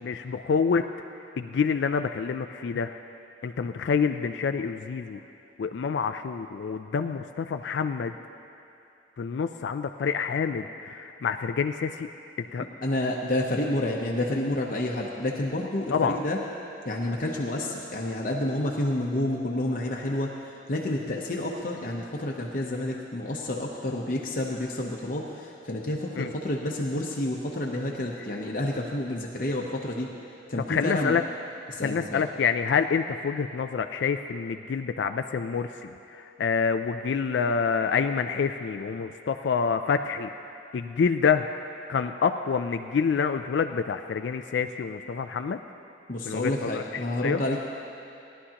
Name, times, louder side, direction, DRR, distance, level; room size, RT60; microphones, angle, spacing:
voice 1, 0.0-0.8 1.4-3.0 3.4-5.2 5.6-8.2 9.2-12.1 12.4-12.7 15.9-16.2 26.2-26.3 30.7-31.2 31.8-40.3 40.7-41.5 41.9-45.6 46.2-47.4, left 6 dB, 65° left, 8 dB, 0.3 m, -27 dB
voice 2, 12.8-16.4 16.8-20.3 20.7-30.1 30.5-31.2 31.7-32.2 46.1-47.6, left 1 dB, 45° left, -2 dB, 0.8 m, -29 dB
18.5 x 11.0 x 2.9 m, 2.7 s
head